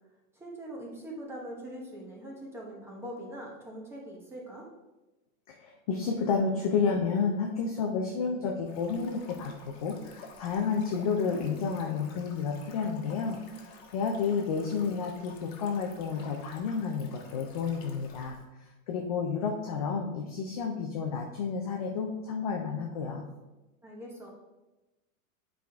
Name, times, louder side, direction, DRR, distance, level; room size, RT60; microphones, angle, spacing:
voice 1, 0.3-4.7 23.8-24.3, right 1 dB, 5° right, -2 dB, 0.9 m, -42 dB
voice 2, 5.5-18.4 18.9-23.2, left 5 dB, 30° left, 1 dB, 0.4 m, -31 dB
Stream, 8.6-18.4, left 5 dB, 45° left, 1.3 m, -52 dB
8.1 x 4.8 x 3.4 m, 1.1 s
supercardioid pair, 155°, 44 cm